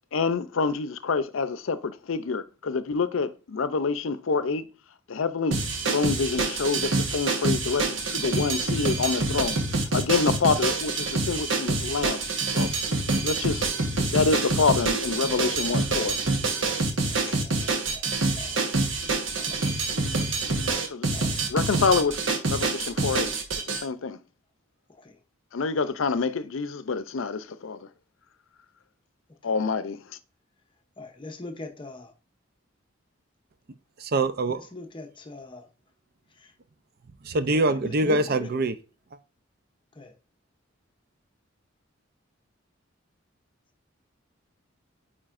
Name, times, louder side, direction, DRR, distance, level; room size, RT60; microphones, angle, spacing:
voice 1, 0.1-4.7 5.1-5.6 5.9-9.6 9.9-12.2 12.5-12.7 13.2-16.2 17.3-17.4 20.9-21.1 21.5-22.2 22.5-23.3 23.6-24.2 25.5-27.9 29.4-30.0, left 4 dB, 85° left, 0.5 m, -27 dB
sound 1, 5.5-23.8, right 3 dB, 70° right, 1.2 m, -26 dB
voice 2, 17.1-18.0 18.4-18.6 19.4-19.7 21.1-21.4 25.0-25.1 31.0-32.1 34.7-35.6 37.5-38.5 40.0-40.1, left 3 dB, 25° left, 0.8 m, -41 dB
voice 3, 34.0-34.7 37.2-38.8, right 2 dB, 50° right, 0.5 m, -24 dB
8.9 x 4.4 x 2.5 m
head